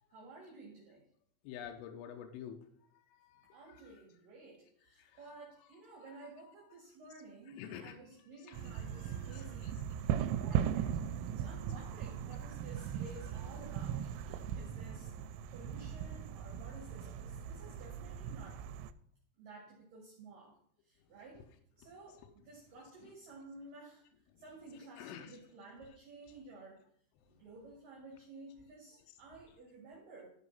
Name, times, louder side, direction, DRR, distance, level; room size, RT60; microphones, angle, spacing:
voice 1, 0.1-1.0 3.5-15.1 15.5-18.6 19.4-20.6 20.8-21.4 21.8-24.0 24.4-26.8 27.3-30.3, right 2 dB, 55° right, -2 dB, 3.0 m, -54 dB
voice 2, 1.4-2.6 3.1-4.0 5.0-5.3 5.7-6.5 7.5-9.8 13.1-13.2 21.4-21.5 22.1-22.2 23.0-23.1 24.7-25.5 26.3-26.4, left 9 dB, 85° left, 4 dB, 3.3 m, -51 dB
sound 1, 8.5-18.9, right 9 dB, 90° right, 3.0 m, -38 dB
13.0 x 4.9 x 5.5 m, 0.67 s
omnidirectional pair, 5.5 m